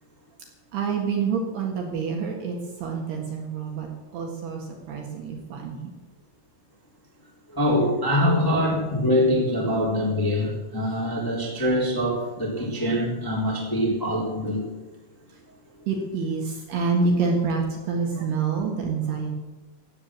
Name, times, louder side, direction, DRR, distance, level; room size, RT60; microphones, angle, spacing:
voice 1, 0.7-5.8 15.9-19.3, right 4 dB, 65° right, 1 dB, 3.3 m, -27 dB
voice 2, 7.5-14.6, equal, 5° left, -3 dB, 2.4 m, -24 dB
16.0 x 8.6 x 7.5 m, 1.2 s
omnidirectional pair, 5.9 m